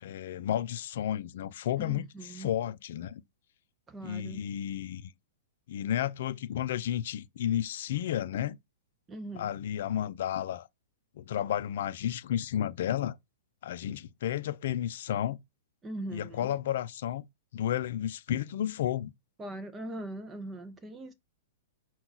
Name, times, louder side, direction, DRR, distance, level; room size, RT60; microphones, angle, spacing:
voice 1, 0.0-2.1 2.3-3.2 4.0-5.1 5.7-8.6 9.3-10.7 11.2-13.2 13.6-15.4 16.1-17.2 17.5-19.1, left 11 dB, 55° left, 0.4 m, -32 dB
voice 2, 1.8-2.5 3.9-4.4 9.1-9.5 15.8-16.5 19.4-21.1, right 1 dB, 10° right, 0.4 m, -41 dB
5.9 x 2.3 x 3.9 m
hypercardioid pair, 165°, 0 cm